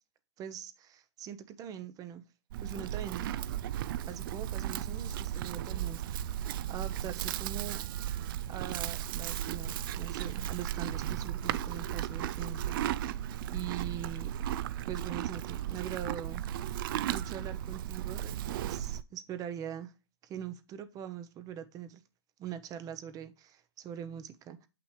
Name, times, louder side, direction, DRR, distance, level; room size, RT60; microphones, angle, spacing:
voice 1, 0.4-2.2 2.6-3.3 4.1-7.8 8.5-13.0 13.4-14.3 14.9-16.4 17.1-19.9 20.2-22.0 22.4-24.7, right 9 dB, 25° right, 0.7 m, -42 dB
Livestock farm animals working animals, 2.5-19.0, right 11 dB, 50° right, 0.4 m, -35 dB
7.3 x 5.9 x 3.1 m
hypercardioid pair, 120°, 14 cm